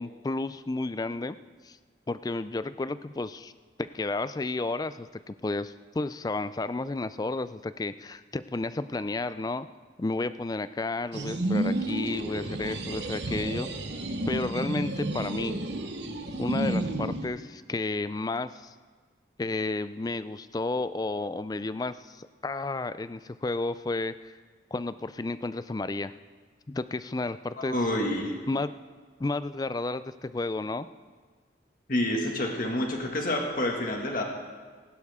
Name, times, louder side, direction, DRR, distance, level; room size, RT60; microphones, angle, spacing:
voice 1, 0.0-1.4 1.6-1.8 2.1-3.5 3.8-9.7 10.0-13.7 14.3-15.6 16.4-18.7 19.4-24.3 24.7-26.1 26.7-27.8 28.5-28.7 29.2-30.9, left 2 dB, 20° left, 14 dB, 0.3 m, -32 dB
sound 1, 11.1-17.3, right 1 dB, 65° right, 1.1 m, -31 dB
voice 2, 27.6-28.3 31.9-34.2, left 1 dB, 45° left, 1 dB, 2.0 m, -28 dB
20.5 x 11.5 x 3.6 m, 1.5 s
head